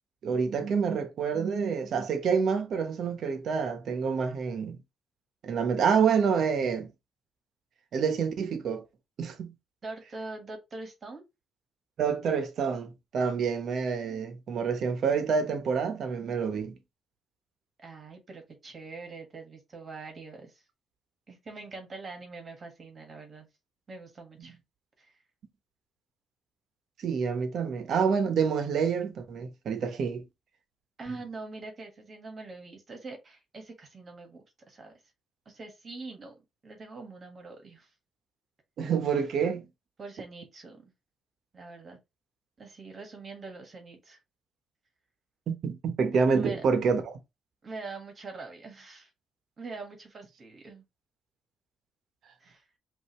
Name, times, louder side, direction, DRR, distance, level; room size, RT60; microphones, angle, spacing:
voice 1, 0.2-4.8 5.4-6.9 7.9-8.8 9.2-9.5 12.0-16.8 27.0-30.2 31.1-31.2 38.8-39.7 45.5-47.2, right 6 dB, 65° right, 1.1 m, -27 dB
voice 2, 9.8-11.2 17.8-20.6 21.3-23.5 23.9-24.6 25.0-25.2 31.0-34.9 35.4-36.4 36.6-37.9 40.0-40.9 41.5-42.0 42.6-44.2 46.3-46.6 47.6-49.1 49.6-50.8 52.4-52.6, right 3 dB, 40° right, 1.6 m, -43 dB
5.4 x 2.8 x 3.1 m
cardioid pair, 90°, 0 cm